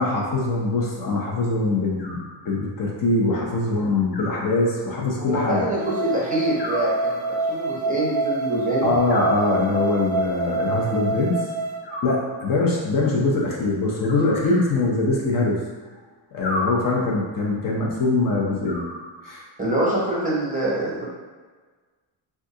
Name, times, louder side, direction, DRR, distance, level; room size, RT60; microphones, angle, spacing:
voice 1, 0.0-5.7 8.8-11.4 12.0-15.6 16.3-18.8 19.2-19.4, left 2 dB, 45° left, -2 dB, 0.6 m, -23 dB
Animal, 2.0-2.9 4.1-5.1 6.6-7.7 9.1-10.1 11.8-12.7 14.0-15.1 16.4-17.3 18.6-19.5, left 1 dB, 65° left, 1.1 m, -34 dB
voice 2, 5.2-8.9 19.6-21.0, right 1 dB, 20° right, -6 dB, 0.6 m, -25 dB
sound 1, 5.8-11.7, right 3 dB, 15° left, 0.8 m, -27 dB
3.6 x 2.3 x 2.6 m, 1.4 s
wide cardioid pair, 165°, 46 cm